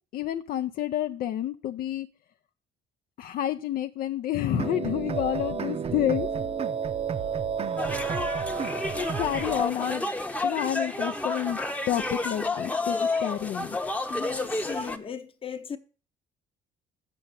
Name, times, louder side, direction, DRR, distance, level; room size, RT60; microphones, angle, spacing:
voice 1, 0.1-2.1 3.2-6.3 9.0-10.1 10.4-11.6 11.9-13.8, left 12 dB, 60° left, 0.5 m, -29 dB
sound 1, 4.5-9.6, right 7 dB, 35° right, 0.6 m, -31 dB
sound 2, 7.8-15.0, left 2 dB, 10° left, 0.8 m, -30 dB
voice 2, 14.1-15.8, left 7 dB, 30° left, 0.9 m, -36 dB
7.8 x 5.9 x 6.9 m
cardioid pair, 110°, 17 cm